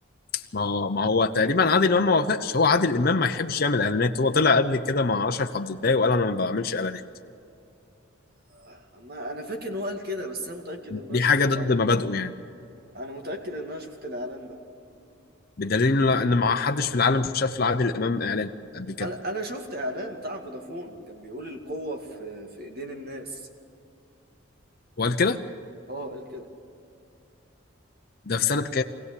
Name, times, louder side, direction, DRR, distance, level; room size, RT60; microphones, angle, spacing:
voice 1, 0.5-7.0 10.9-12.3 15.6-19.1 25.0-25.4 28.3-28.8, left 4 dB, 45° left, 5 dB, 0.8 m, -23 dB
voice 2, 8.5-11.9 12.8-14.6 15.0-15.3 19.0-23.5 25.9-26.5, equal, 45° right, 3 dB, 2.3 m, -35 dB
24.5 x 17.0 x 8.4 m, 2.6 s
head